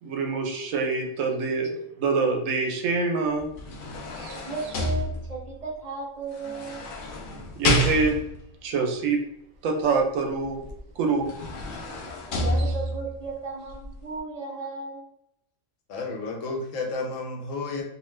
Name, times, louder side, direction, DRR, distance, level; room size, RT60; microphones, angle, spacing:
voice 1, 0.0-3.5 4.1-4.4 7.6-8.2 8.6-9.2 9.6-10.6 11.0-11.3, right 4 dB, 90° right, 3 dB, 1.0 m, -25 dB
sound 1, 3.4-5.6 6.4-8.4 10.7-10.8 11.2-13.2 13.7-13.8, left 1 dB, 60° left, 0.5 m, -28 dB
voice 2, 4.5-6.9 12.4-15.0, right 3 dB, 45° right, -3 dB, 0.5 m, -35 dB
voice 3, 15.9-17.8, left 3 dB, 90° left, 1 dB, 1.0 m, -31 dB
2.7 x 2.2 x 3.1 m, 0.76 s
omnidirectional pair, 1.3 m